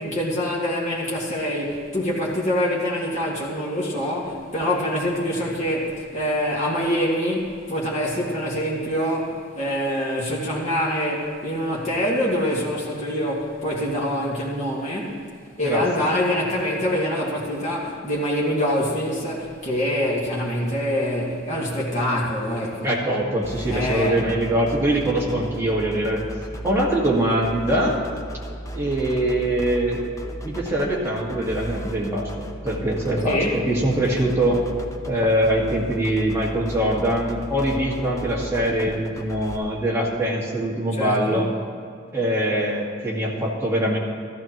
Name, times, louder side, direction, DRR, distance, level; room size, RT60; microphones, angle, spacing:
voice 1, 0.0-15.2 15.6-22.9 23.7-24.1 33.3-33.6 40.9-41.5, equal, 35° left, -6 dB, 2.0 m, -25 dB
voice 2, 15.6-16.1 22.8-26.2 26.6-28.0 28.7-30.0 30.4-34.6 35.1-41.5 42.1-44.0, right 1 dB, 10° right, -4 dB, 1.8 m, -23 dB
sound 1, 23.4-39.6, right 1 dB, 15° left, 0.6 m, -35 dB
15.0 x 13.5 x 3.0 m, 2.3 s
head